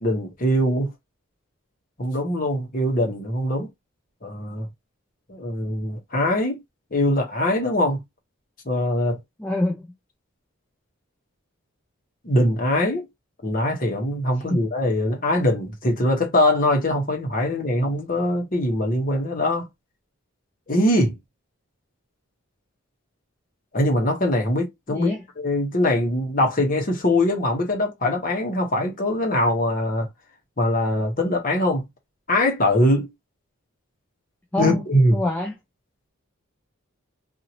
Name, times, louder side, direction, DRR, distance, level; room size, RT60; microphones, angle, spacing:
voice 1, 0.0-0.9 2.0-3.7 4.2-4.7 5.3-6.6 6.9-8.0 8.6-9.2 12.2-13.1 13.4-19.7 20.7-21.1 23.7-30.1 30.6-31.8 32.3-33.1 34.6-35.2, left 1 dB, 40° left, 1.2 m, -22 dB
voice 2, 9.4-9.9 14.5-14.6 24.9-25.2 34.5-34.8 35.1-35.6, left 1 dB, 10° left, 0.5 m, -24 dB
2.7 x 2.7 x 2.9 m
head